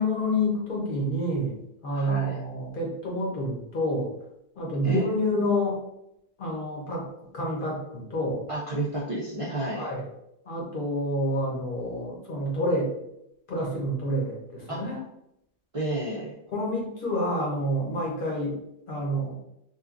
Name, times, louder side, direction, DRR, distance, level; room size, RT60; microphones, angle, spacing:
voice 1, 0.0-1.6 1.8-4.1 4.6-5.8 6.4-7.1 7.3-8.5 9.7-10.0 10.4-12.9 13.5-15.0 16.5-18.6 18.9-19.3, equal, 50° left, -3 dB, 0.9 m, -28 dB
voice 2, 1.9-2.4 4.8-5.1 8.5-9.9 14.7-15.0 15.7-16.3, right 1 dB, 60° right, -5 dB, 0.3 m, -31 dB
2.9 x 2.3 x 2.4 m, 0.81 s
omnidirectional pair, 1.2 m